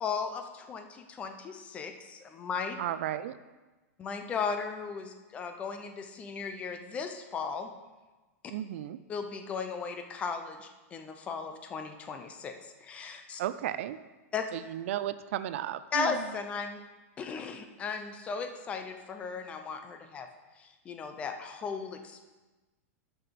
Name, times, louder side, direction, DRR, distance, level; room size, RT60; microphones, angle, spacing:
voice 1, 0.0-2.8 4.0-7.7 9.1-13.4 14.3-14.5 15.9-16.8 17.2-20.3 20.6-22.2, left 5 dB, 15° left, 7 dB, 0.5 m, -36 dB
voice 2, 2.8-3.4 8.5-9.0 13.4-14.0 14.5-16.2, right 12 dB, 55° right, 14 dB, 0.4 m, -34 dB
6.9 x 6.6 x 5.9 m, 1.2 s
supercardioid pair, 170°, 8 cm